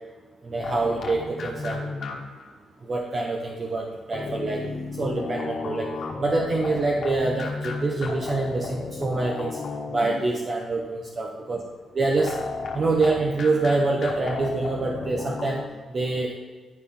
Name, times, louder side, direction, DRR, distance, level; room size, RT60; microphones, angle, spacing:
voice 1, 0.4-1.9 2.8-4.6 5.0-5.9 6.2-9.6 9.9-11.6 11.9-12.3 12.7-15.6 15.9-16.3, right 3 dB, 45° right, 0 dB, 0.9 m, -25 dB
sound 1, 0.6-2.5 4.1-10.5 12.2-15.7, left 4 dB, 65° left, 1.3 m, -34 dB
10.5 x 3.6 x 5.6 m, 1.4 s
cardioid pair, 80°, 0 cm